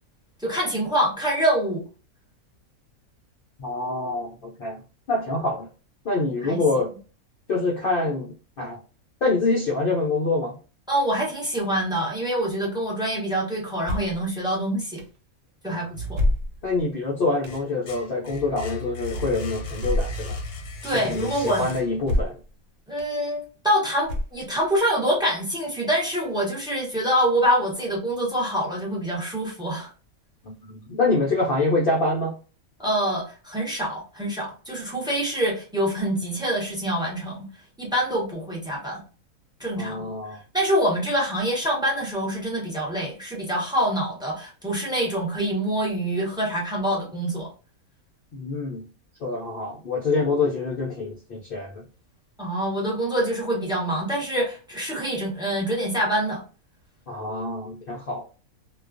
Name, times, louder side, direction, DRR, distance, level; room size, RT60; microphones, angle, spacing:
voice 1, 0.4-1.8 6.4-6.6 10.9-15.0 15.6-16.2 20.8-21.7 22.9-29.9 32.8-37.4 37.8-39.0 39.6-40.1 40.5-47.5 52.4-56.4, equal, 5° right, -3 dB, 0.4 m, -25 dB
voice 2, 3.6-4.8 5.1-5.7 6.0-6.9 7.5-8.8 9.2-10.6 15.7-15.8 16.6-20.4 21.0-22.4 30.4-32.3 39.8-40.4 48.3-48.9 49.2-51.8 57.1-58.3, left 3 dB, 70° left, -2 dB, 0.5 m, -26 dB
sound 1, 13.8-14.2 15.0-15.1 16.1-16.8 17.4-17.6 19.8-20.2 20.9-21.0 22.0-22.5 23.0-23.1 24.0-24.6, left 1 dB, 75° right, 1.0 m, -26 dB
sound 2, 15.9-16.8 17.2-22.2, left 1 dB, 85° left, 1.1 m, -36 dB
2.3 x 2.2 x 2.4 m, 0.35 s
omnidirectional pair, 1.5 m